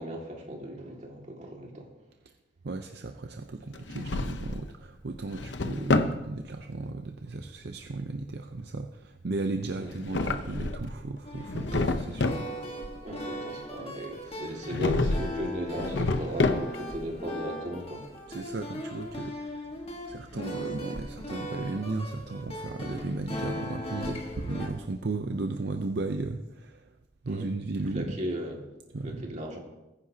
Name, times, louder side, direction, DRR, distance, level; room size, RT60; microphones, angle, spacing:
voice 1, 0.0-1.9 9.8-9.9 13.0-18.1 27.3-27.5 27.9-28.6 29.0-29.6, right 1 dB, 40° right, 0 dB, 2.1 m, -37 dB
voice 2, 2.6-12.5 18.3-19.7 20.1-26.9 27.2-28.2 28.9-29.3, right 3 dB, 65° right, 5 dB, 0.6 m, -35 dB
Drawer open or close, 3.7-4.7 5.1-6.2 9.8-11.0 11.4-12.5 14.7-15.4 15.7-17.0, left 2 dB, 75° left, 0.8 m, -28 dB
sound 1, 11.2-24.7, left 1 dB, 35° left, 1.5 m, -39 dB
20.5 x 9.9 x 2.8 m, 1.0 s
head